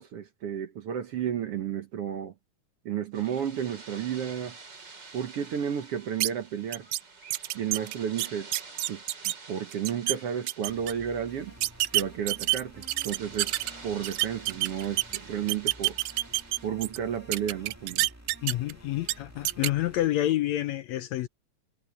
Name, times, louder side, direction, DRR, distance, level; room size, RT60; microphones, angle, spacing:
voice 1, 0.0-2.3 2.9-4.6 5.1-6.9 7.5-8.5 8.9-11.5 11.9-13.6 13.8-16.0 16.6-18.1, right 9 dB, 60° right, 1.8 m, -32 dB
sound 1, 3.1-16.7, right 4 dB, 35° right, 3.6 m, -49 dB
sound 2, 6.2-6.3 6.7-7.0 7.3-9.3 9.7-10.2 10.5-10.9 11.6-13.7 14.0-15.2 15.5-17.0 17.3-18.7 19.0-19.1 19.5-19.7, right 18 dB, 80° right, 1.6 m, -27 dB
sound 3, 10.7-20.1, right 1 dB, 5° right, 1.3 m, -51 dB
voice 2, 18.4-21.3, left 14 dB, 75° left, 1.7 m, -28 dB
omnidirectional pair, 3.6 m